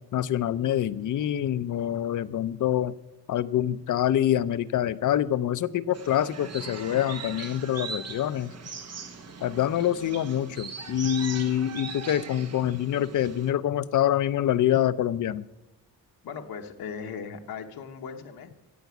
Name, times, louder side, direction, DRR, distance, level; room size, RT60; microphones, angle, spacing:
voice 1, 0.1-2.9 3.3-8.5 9.4-15.4, left 11 dB, 55° left, 14 dB, 0.6 m, -26 dB
sound 1, 5.9-13.5, right 5 dB, 45° right, 1.3 m, -40 dB
voice 2, 16.2-18.6, left 6 dB, 75° left, 4 dB, 1.2 m, -38 dB
15.5 x 5.8 x 8.2 m, 1.0 s
wide cardioid pair, 170°, 36 cm